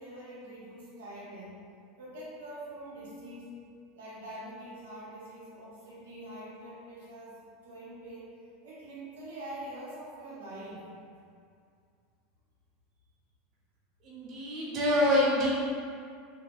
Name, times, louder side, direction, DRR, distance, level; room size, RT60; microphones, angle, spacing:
voice 1, 0.0-1.5 2.0-3.5 3.9-8.3 8.6-10.9, right 1 dB, 80° right, -7 dB, 0.8 m, -44 dB
voice 2, 14.0-15.5, left 1 dB, 45° right, -7 dB, 0.5 m, -26 dB
2.7 x 2.7 x 2.2 m, 2.3 s
hypercardioid pair, 90°, 0 cm